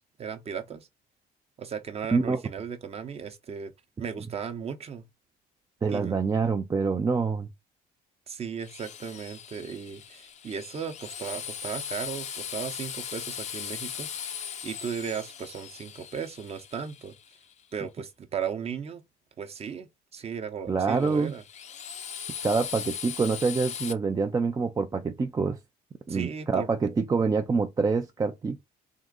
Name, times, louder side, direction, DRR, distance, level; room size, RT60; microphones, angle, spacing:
voice 1, 0.2-0.9 1.6-3.7 4.0-5.0 5.9-6.2 8.3-17.2 17.7-19.0 19.4-21.4 26.1-26.7, right 7 dB, 35° right, 0.8 m, -36 dB
voice 2, 5.8-7.5 20.7-21.3 22.4-25.6 26.1-28.6, right 4 dB, 20° right, 0.4 m, -26 dB
Drill, 8.6-17.5 20.9-23.9, left 8 dB, 45° left, 0.5 m, -39 dB
3.7 x 2.5 x 3.7 m
cardioid pair, 110°, 17 cm